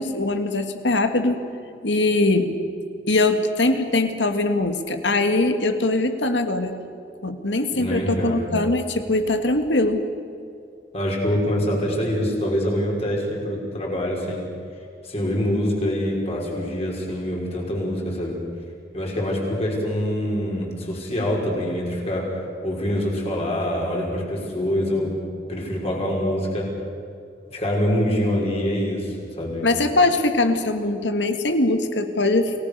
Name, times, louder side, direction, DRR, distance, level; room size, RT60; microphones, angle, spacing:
voice 1, 0.0-1.4 1.8-2.5 3.1-6.7 7.2-10.0 29.6-32.5, left 2 dB, 85° left, 7 dB, 2.0 m, -21 dB
voice 2, 7.7-8.5 10.9-14.4 15.0-18.4 18.9-22.3 22.6-25.1 25.5-26.7 27.5-29.7, equal, 35° left, -1 dB, 5.6 m, -25 dB
29.0 x 18.5 x 6.8 m, 2.6 s
head